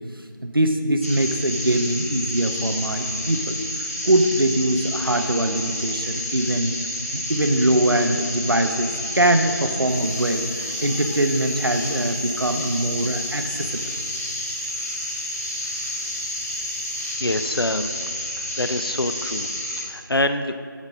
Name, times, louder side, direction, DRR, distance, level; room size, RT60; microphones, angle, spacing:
voice 1, 0.4-3.5 4.0-6.7 7.1-13.8, right 1 dB, 80° right, 6 dB, 1.0 m, -22 dB
sound 1, 1.0-19.9, left 1 dB, 45° left, 1.6 m, -30 dB
sound 2, 9.8-17.1, left 1 dB, 15° left, 1.8 m, -47 dB
voice 2, 17.2-17.9 18.4-19.5 19.8-20.5, left 1 dB, 90° left, 8 dB, 0.7 m, -25 dB
7.1 x 6.6 x 6.4 m, 2.1 s
figure-of-eight pair, 180°, 12 cm